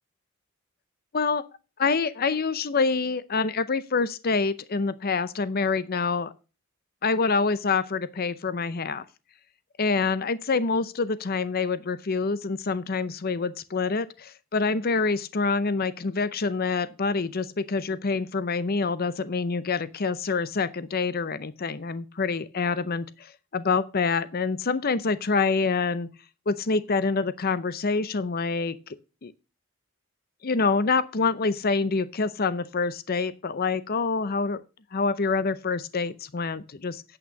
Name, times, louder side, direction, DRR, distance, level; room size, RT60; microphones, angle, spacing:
voice 1, 1.8-6.3 7.0-9.0 9.8-26.1 26.5-28.8 29.2-29.3 30.4-34.6 34.9-37.0, left 4 dB, 45° left, 0.6 m, -26 dB
8.7 x 8.4 x 5.1 m
head